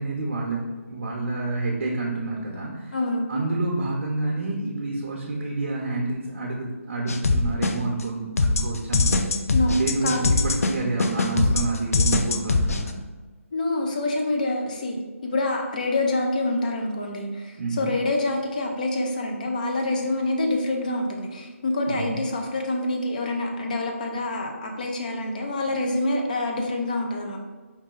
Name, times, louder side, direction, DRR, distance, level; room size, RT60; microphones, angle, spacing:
voice 1, 0.0-3.0 3.3-9.3 9.7-13.0 17.6-17.9 21.9-22.2, right 2 dB, 50° right, -2 dB, 0.8 m, -28 dB
voice 2, 2.9-3.3 9.5-10.2 13.5-15.0 15.2-27.4, left 2 dB, 35° left, 2 dB, 0.5 m, -26 dB
sound 1, 7.1-8.0 8.4-12.9, left 3 dB, 80° left, 0.5 m, -22 dB
4.8 x 2.6 x 3.8 m, 1.3 s
hypercardioid pair, 175°, 8 cm